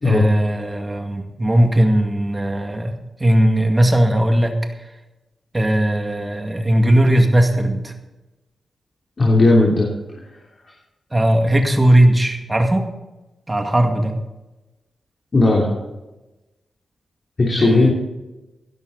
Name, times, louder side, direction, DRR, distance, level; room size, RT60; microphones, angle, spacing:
voice 1, 0.0-2.9 3.2-4.5 5.5-7.9 11.1-12.9 13.5-14.2 17.6-17.9, right 1 dB, 20° right, 4 dB, 2.1 m, -17 dB
voice 2, 9.2-9.9 15.3-15.7 17.4-17.9, left 2 dB, 35° left, -3 dB, 3.2 m, -15 dB
17.0 x 12.5 x 4.1 m, 1.0 s
wide cardioid pair, 110°, 0 cm